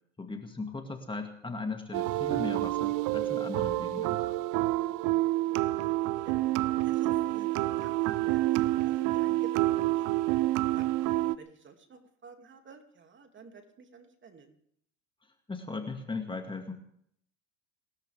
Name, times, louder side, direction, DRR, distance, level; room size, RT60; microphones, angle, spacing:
voice 1, 0.2-4.2 15.5-16.7, left 3 dB, 15° left, 5 dB, 2.2 m, -38 dB
sound 1, 1.9-11.3, right 17 dB, 55° right, 0.9 m, -28 dB
voice 2, 5.4-6.0 6.2-6.4 6.8-10.3 10.7-14.6, right 5 dB, 30° right, 5 dB, 2.8 m, -51 dB
29.5 x 13.5 x 3.6 m, 0.67 s
hypercardioid pair, 85°, 37 cm